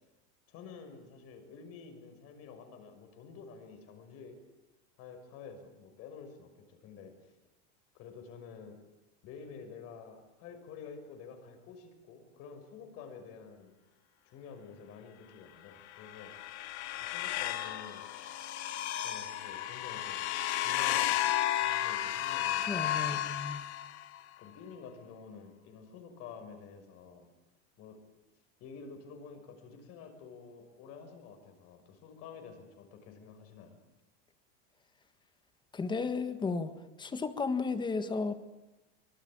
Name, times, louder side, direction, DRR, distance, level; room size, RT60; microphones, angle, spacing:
voice 1, 0.5-4.4 5.0-7.3 7.9-8.8 9.2-13.7 14.2-16.3 17.0-18.1 19.0-20.2 20.6-21.2 21.6-23.4 23.7-23.9 24.4-27.3 27.8-28.0 28.6-33.8, left 5 dB, 45° left, 6 dB, 6.1 m, -50 dB
sound 1, 15.9-24.2, left 12 dB, 85° left, 2.2 m, -33 dB
voice 2, 22.7-23.6 35.7-36.7 37.0-38.3, left 4 dB, 15° left, 11 dB, 1.6 m, -33 dB
24.5 x 22.0 x 8.8 m, 0.98 s
supercardioid pair, 150°, 33 cm